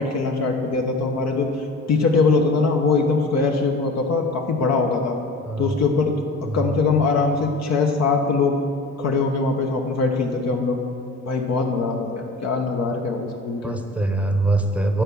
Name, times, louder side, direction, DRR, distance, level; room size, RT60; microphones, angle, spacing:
voice 1, 0.0-5.2 5.6-6.1 6.5-8.6 9.0-10.8 11.2-13.7, left 4 dB, 60° left, 2 dB, 1.0 m, -22 dB
voice 2, 5.4-5.8 6.4-6.8 13.6-15.0, right 2 dB, 5° right, 5 dB, 0.9 m, -23 dB
10.5 x 4.5 x 6.9 m, 2.3 s
cardioid pair, 90°, 30 cm